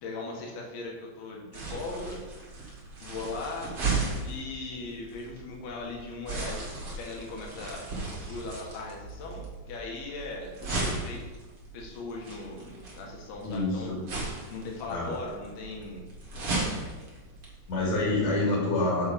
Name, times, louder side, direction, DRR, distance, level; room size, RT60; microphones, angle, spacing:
voice 1, 0.0-2.2 3.0-3.8 4.2-7.8 8.3-11.2 11.7-13.9 14.5-16.0, left 3 dB, 70° left, -2 dB, 3.5 m, -39 dB
sound 1, 1.5-18.4, right 3 dB, 40° right, 2.6 m, -36 dB
voice 2, 13.4-14.0 14.9-15.1 17.7-19.1, left 2 dB, 45° left, -5 dB, 2.9 m, -27 dB
8.1 x 6.8 x 5.2 m, 1.3 s
omnidirectional pair, 4.9 m